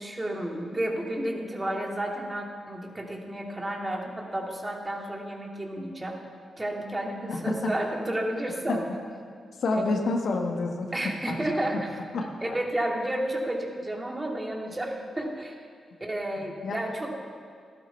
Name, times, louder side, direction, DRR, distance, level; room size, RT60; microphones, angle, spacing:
voice 1, 0.0-6.2 6.6-8.8 9.7-9.9 10.9-11.9 12.4-15.6 16.0-17.1, right 1 dB, 25° right, 0 dB, 2.4 m, -31 dB
voice 2, 7.3-7.7 8.7-8.8 9.6-11.6 12.1-12.3 16.4-16.8, left 3 dB, 70° left, 2 dB, 1.5 m, -29 dB
14.0 x 12.0 x 4.5 m, 2.1 s
supercardioid pair, 50°, 0 cm